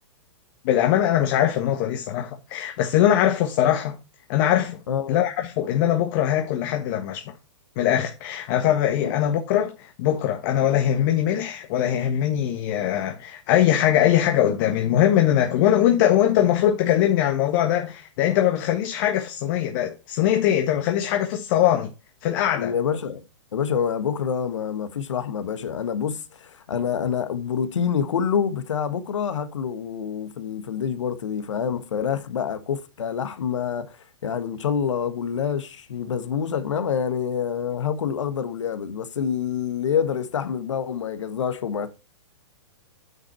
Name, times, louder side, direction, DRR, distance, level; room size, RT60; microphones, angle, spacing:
voice 1, 0.6-4.0 4.3-4.8 5.1-7.3 7.8-21.9 22.2-22.7, left 11 dB, 45° left, 1.3 m, -21 dB
voice 2, 4.9-5.2 9.0-9.1 22.6-23.2 23.5-34.0 34.2-41.9, left 7 dB, 75° left, 1.5 m, -27 dB
9.5 x 5.3 x 4.4 m
hypercardioid pair, 130°, 16 cm